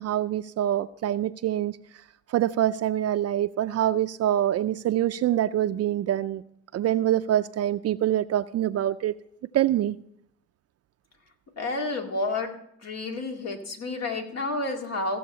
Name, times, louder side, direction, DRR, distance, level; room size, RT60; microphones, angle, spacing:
voice 1, 0.0-1.8 2.3-6.4 6.7-9.1 9.5-10.0, right 12 dB, 55° right, 10 dB, 0.4 m, -25 dB
voice 2, 11.6-12.5 12.8-15.2, left 2 dB, 55° left, 3 dB, 2.1 m, -30 dB
15.5 x 7.0 x 5.6 m, 0.72 s
cardioid pair, 90°, 30 cm